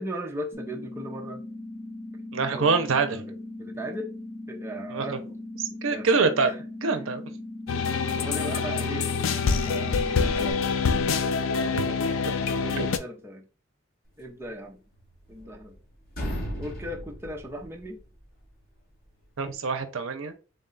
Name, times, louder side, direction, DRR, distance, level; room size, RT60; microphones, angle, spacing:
voice 1, 0.0-1.4 2.5-4.1 4.5-5.2 5.9-6.6 7.8-9.1 9.6-10.7 11.6-13.5 14.2-14.8 15.3-15.8 16.6-18.0, right 1 dB, 15° right, 0 dB, 0.6 m, -38 dB
sound 1, 0.5-10.5, left 2 dB, 30° left, 1.3 m, -39 dB
voice 2, 2.3-3.2 4.9-5.2 5.8-6.5 6.8-7.2 12.8-12.9 19.4-20.3, right 4 dB, 85° right, 8 dB, 0.6 m, -25 dB
sound 2, 7.7-13.0, left 5 dB, 85° left, 0.4 m, -26 dB
sound 3, 14.9-15.8 16.1-18.2, equal, 50° left, 1.6 m, -35 dB
3.7 x 2.3 x 3.8 m, 0.34 s
head